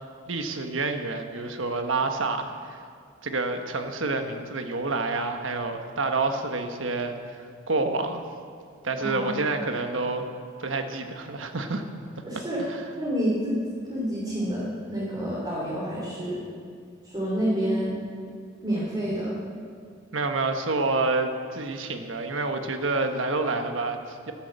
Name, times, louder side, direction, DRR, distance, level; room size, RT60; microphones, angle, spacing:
voice 1, 0.3-2.8 3.2-8.2 8.8-10.3 10.6-11.8 12.7-12.9 20.1-24.3, right 3 dB, 70° right, 6 dB, 1.4 m, -28 dB
voice 2, 9.0-9.4 12.2-12.6 13.0-13.6 13.9-16.4 17.0-18.0 18.6-19.4, equal, 25° right, -8 dB, 3.6 m, -28 dB
13.0 x 12.0 x 8.1 m, 2.2 s
head